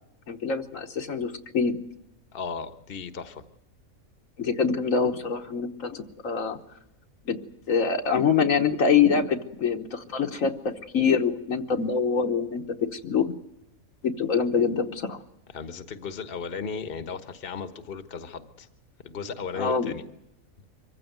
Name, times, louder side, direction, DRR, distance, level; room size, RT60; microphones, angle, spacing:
voice 1, 0.3-1.8 4.4-6.6 7.3-7.4 7.7-10.6 10.9-12.6 12.9-13.3 14.0-15.2 19.5-19.9, left 6 dB, 65° left, 4 dB, 1.6 m, -25 dB
voice 2, 2.3-3.4 15.5-18.7 19.0-20.0, left 5 dB, 40° left, 10 dB, 1.3 m, -35 dB
24.5 x 15.5 x 9.3 m, 0.84 s
omnidirectional pair, 1.5 m